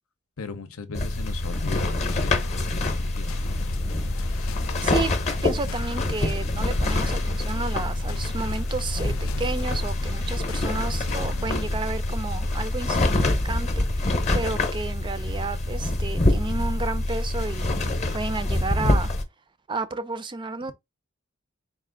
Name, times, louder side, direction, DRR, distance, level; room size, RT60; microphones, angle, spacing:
voice 1, 0.4-2.4 2.7-3.4, left 4 dB, 90° left, 0.7 m, -37 dB
sound 1, 0.9-19.2, left 2 dB, 35° left, 0.7 m, -25 dB
sound 2, 2.1-11.7, left 8 dB, 70° left, 0.3 m, -40 dB
voice 2, 4.8-5.1 5.4-17.8 18.1-19.1 19.7-20.7, right 3 dB, 20° right, 0.4 m, -32 dB
4.1 x 2.4 x 3.7 m
head